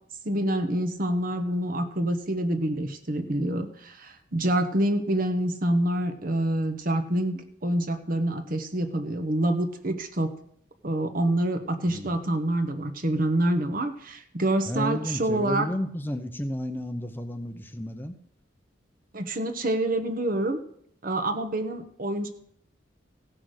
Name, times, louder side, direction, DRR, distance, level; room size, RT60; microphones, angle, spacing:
voice 1, 0.2-10.3 10.8-15.7 19.1-20.6 21.0-22.3, right 1 dB, 50° right, 7 dB, 1.2 m, -27 dB
voice 2, 14.7-18.2, equal, 10° left, 7 dB, 0.7 m, -32 dB
16.0 x 6.1 x 6.5 m, 0.67 s
head